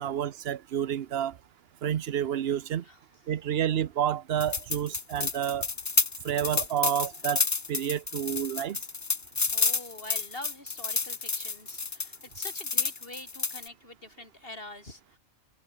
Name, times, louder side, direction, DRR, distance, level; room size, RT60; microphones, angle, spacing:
voice 1, 0.0-1.4 1.8-2.8 3.3-5.7 6.2-7.4 7.7-8.8, right 10 dB, 65° right, 1.0 m, -29 dB
sound 1, 4.4-13.7, left 4 dB, 30° left, 0.3 m, -30 dB
voice 2, 9.5-15.2, left 2 dB, 55° left, 6.3 m, -45 dB
omnidirectional pair, 1.1 m